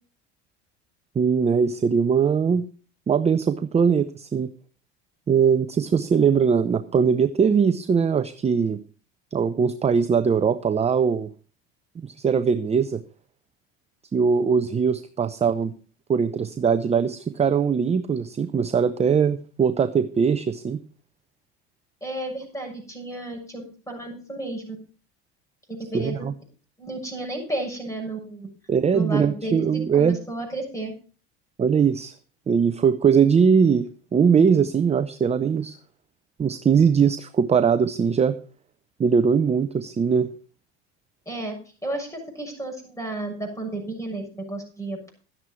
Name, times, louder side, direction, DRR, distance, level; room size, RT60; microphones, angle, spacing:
voice 1, 1.2-2.7 3.1-4.5 5.3-8.8 9.3-11.3 12.0-13.0 14.1-15.7 16.1-20.8 25.9-26.3 28.7-30.2 31.6-32.1 32.5-35.8 36.4-38.4 39.0-40.3, right 6 dB, 20° right, 11 dB, 0.7 m, -21 dB
voice 2, 22.0-24.8 25.7-26.1 26.8-28.5 28.9-30.9 41.2-41.5 41.8-45.2, right 2 dB, 10° left, 3 dB, 6.7 m, -32 dB
12.5 x 10.0 x 4.4 m, 0.38 s
supercardioid pair, 100°, 31 cm